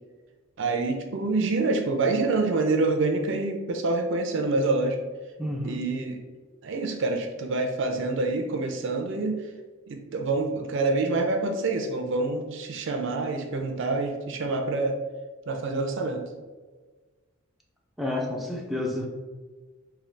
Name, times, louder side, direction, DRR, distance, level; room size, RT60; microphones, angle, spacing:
voice 1, 0.6-5.0 5.6-6.2 6.6-9.4 9.9-14.9 15.5-16.2, right 3 dB, 65° right, 4 dB, 0.5 m, -26 dB
voice 2, 5.4-5.8 18.0-19.1, left 1 dB, ahead, -2 dB, 0.5 m, -30 dB
3.7 x 2.3 x 3.3 m, 1.3 s
head